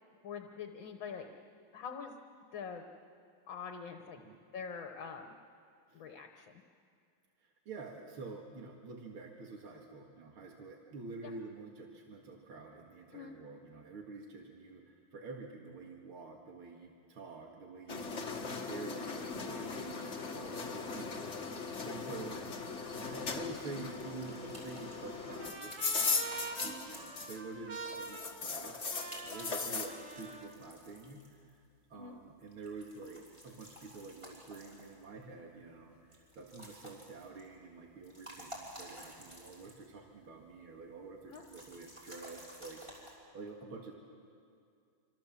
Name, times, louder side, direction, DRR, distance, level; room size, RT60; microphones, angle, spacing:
voice 1, 0.2-1.3 1.7-2.1 2.5-2.9 3.5-4.2 4.5-5.4 5.9-6.6 11.2-11.3 13.1-13.4 19.9-20.2 26.6-26.8 31.9-32.2 41.3-41.4, left 6 dB, 65° left, 4 dB, 1.9 m, -45 dB
voice 2, 7.4-22.5 23.1-31.6 31.9-43.9, right 3 dB, 85° right, 1 dB, 2.7 m, -48 dB
sound 1, 17.9-27.6 27.8-29.9, left 4 dB, 35° left, 1.8 m, -38 dB
sound 2, 23.7-27.7 28.6-31.6 32.5-35.2 36.1-37.5 37.9-40.0 40.2-40.3 41.3-43.2, equal, 15° right, 5.2 m, -53 dB
Trumpet, 24.2-30.6, right 3 dB, 40° right, 1.9 m, -46 dB
27.0 x 26.0 x 7.5 m, 2.3 s
omnidirectional pair, 2.3 m